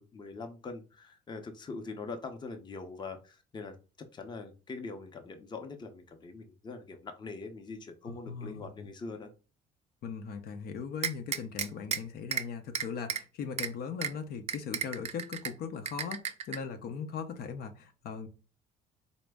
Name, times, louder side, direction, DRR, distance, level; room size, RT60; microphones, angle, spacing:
voice 1, 0.0-9.3, left 3 dB, 25° left, 0.6 m, -43 dB
voice 2, 8.0-8.9 10.0-18.3, left 6 dB, 65° left, 0.6 m, -39 dB
sound 1, 11.0-12.0 12.3-12.4 12.7-13.2 13.6-13.7 14.0-14.1 14.5-15.5 15.9-16.6, right 8 dB, 40° right, 0.4 m, -32 dB
4.0 x 2.1 x 3.4 m
cardioid pair, 110°, 17 cm